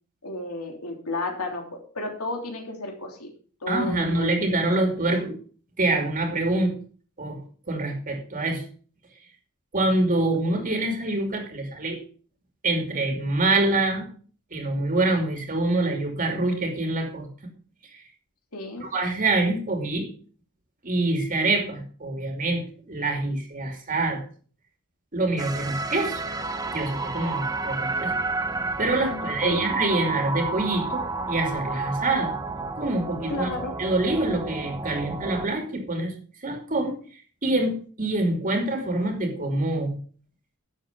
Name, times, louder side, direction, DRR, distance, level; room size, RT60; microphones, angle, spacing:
voice 1, 0.2-3.3 3.6-4.5 18.5-18.9 29.1-29.8 33.3-33.8, left 2 dB, 75° left, 1 dB, 3.3 m, -33 dB
voice 2, 3.7-5.4 5.8-6.7 7.2-7.4 7.7-8.6 9.7-12.0 12.6-14.1 14.5-17.3 18.8-20.1 20.8-24.2 25.1-26.2 26.7-28.1 28.8-32.3 32.8-33.5 33.8-36.1 36.4-37.0 37.4-40.0, right 2 dB, 35° right, 3 dB, 2.6 m, -25 dB
sound 1, 25.4-35.5, right 3 dB, 15° right, 0.8 m, -31 dB
11.5 x 7.4 x 5.2 m, 0.42 s
head